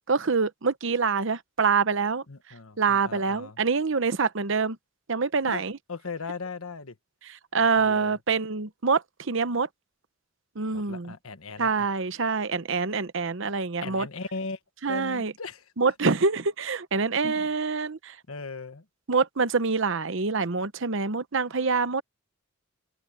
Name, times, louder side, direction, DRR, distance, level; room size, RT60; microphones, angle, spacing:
voice 1, 0.1-2.2 2.8-4.8 5.1-5.8 7.2-9.7 10.6-11.1 11.6-14.1 14.8-15.3 15.8-18.1 19.1-22.0, right 4 dB, 65° right, 0.9 m, -26 dB
voice 2, 2.3-3.6 5.5-5.6 5.9-7.0 7.7-8.2 10.7-11.9 13.8-14.6 14.9-15.9 17.2-17.5 18.3-18.8, left 4 dB, 85° left, 1.4 m, -38 dB
open air
head